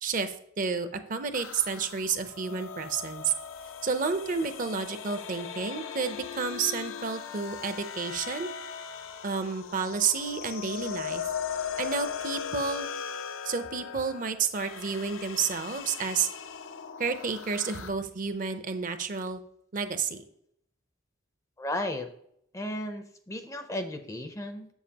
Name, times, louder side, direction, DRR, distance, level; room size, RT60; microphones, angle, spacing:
voice 1, 0.0-3.3 3.8-8.5 9.2-11.3 11.8-12.9 13.4-16.3 17.0-19.4 19.7-20.2, right 5 dB, 40° right, 10 dB, 0.5 m, -30 dB
sound 1, 1.3-17.9, left 7 dB, 80° left, 0.5 m, -39 dB
voice 2, 21.6-22.1 22.5-24.7, left 1 dB, 15° left, 7 dB, 0.4 m, -34 dB
7.2 x 7.0 x 2.8 m, 0.72 s
head